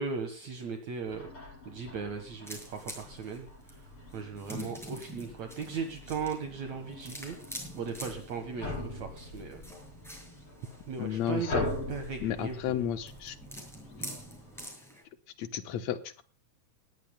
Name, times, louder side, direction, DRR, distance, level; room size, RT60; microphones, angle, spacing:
voice 1, 0.0-3.9 4.1-9.6 10.9-11.5 11.9-12.8, right 5 dB, 60° right, 5 dB, 2.6 m, -38 dB
sound 1, 1.1-14.7, left 1 dB, 40° left, 6.1 m, -42 dB
sound 2, 2.4-15.0, equal, ahead, 7.4 m, -47 dB
voice 2, 11.0-11.7 12.2-13.4 15.4-16.2, left 10 dB, 65° left, 10 dB, 2.0 m, -33 dB
19.5 x 18.0 x 2.3 m, 0.35 s
omnidirectional pair, 4.0 m